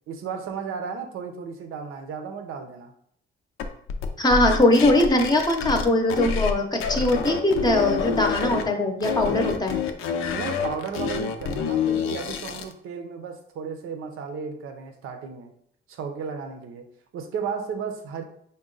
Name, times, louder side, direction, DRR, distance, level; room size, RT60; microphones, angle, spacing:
voice 1, 0.1-2.9 10.3-15.5 15.9-16.9 17.1-18.2, right 6 dB, 80° right, 6 dB, 0.7 m, -34 dB
sound 1, 3.6-6.5 6.8-8.6 9.0-12.7, left 6 dB, 90° left, 0.5 m, -27 dB
voice 2, 4.2-9.8, left 1 dB, 20° left, 3 dB, 0.6 m, -21 dB
5.3 x 2.2 x 3.8 m, 0.68 s
cardioid pair, 125°, 21 cm